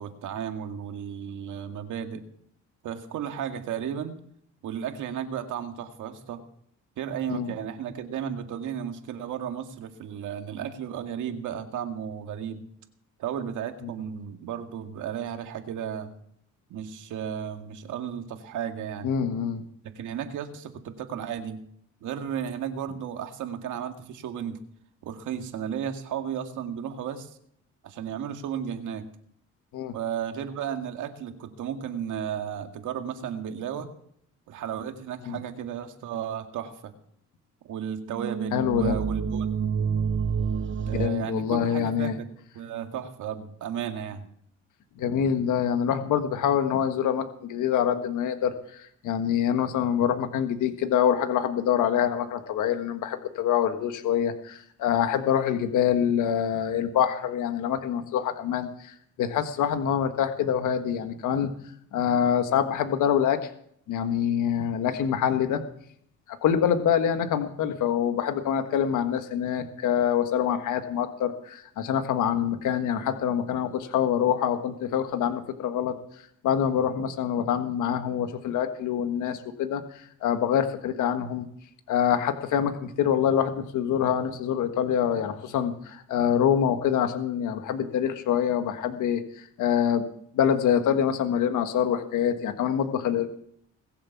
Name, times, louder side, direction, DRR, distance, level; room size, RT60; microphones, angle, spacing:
voice 1, 0.0-2.2 2.8-4.1 4.6-6.4 7.0-12.6 13.2-16.1 16.7-19.2 19.8-21.6 22.0-24.6 25.0-27.3 27.8-29.1 29.9-33.9 34.5-36.9 37.6-39.7 40.9-42.3 42.5-44.3, right 8 dB, 80° right, 6 dB, 2.1 m, -34 dB
voice 2, 19.0-19.6 29.7-29.9 35.3-35.4 38.5-38.9 40.9-42.2 45.0-61.5 61.9-63.4 63.9-65.6 66.3-75.9 76.4-81.4 81.9-90.1 90.3-93.4, left 9 dB, 80° left, 7 dB, 1.5 m, -25 dB
sound 1, 38.1-41.1, right 6 dB, 40° right, 1.0 m, -28 dB
21.5 x 7.5 x 7.2 m, 0.66 s
cardioid pair, 90°, 30 cm